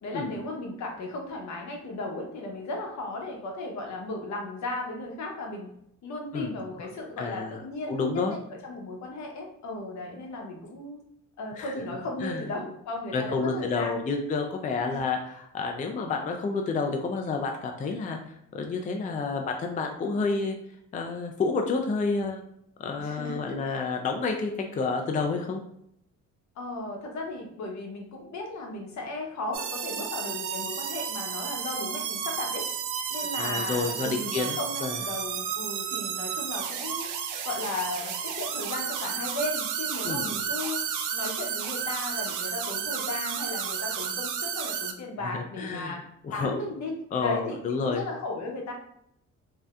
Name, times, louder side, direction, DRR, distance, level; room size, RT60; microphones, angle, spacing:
voice 1, 0.0-5.7 6.0-11.0 11.4-14.0 14.8-15.0 23.0-23.9 26.6-32.7 33.1-37.1 37.4-40.8 41.1-46.0 46.3-48.7, left 2 dB, 65° left, 1 dB, 0.8 m, -36 dB
voice 2, 7.2-7.6 7.9-8.4 11.5-11.7 12.2-12.4 13.1-18.2 18.5-20.6 20.9-22.4 22.8-25.6 33.3-35.0 40.0-40.3 45.3-46.0 46.2-46.5 47.1-48.0, left 4 dB, 25° left, 3 dB, 0.4 m, -29 dB
sound 1, 29.5-44.9, right 7 dB, 85° right, 0.5 m, -32 dB
3.3 x 2.7 x 2.3 m, 0.73 s
cardioid pair, 90°, 30 cm